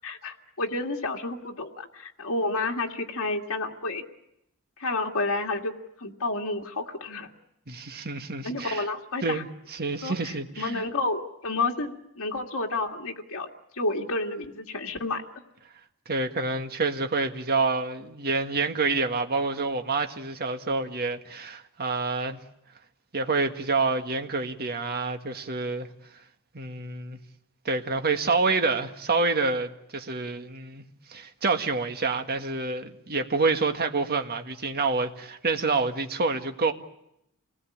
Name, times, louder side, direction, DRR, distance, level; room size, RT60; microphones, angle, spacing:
voice 1, 0.0-4.0 4.8-5.7 6.0-7.3 8.4-9.4 10.0-13.5 13.7-15.2, left 2 dB, 65° left, 2.2 m, -30 dB
voice 2, 7.7-8.8 9.2-10.8 16.1-22.4 23.1-25.9 26.5-27.2 27.7-30.8 31.1-36.7, right 3 dB, 45° right, 1.7 m, -27 dB
27.5 x 19.5 x 8.7 m
head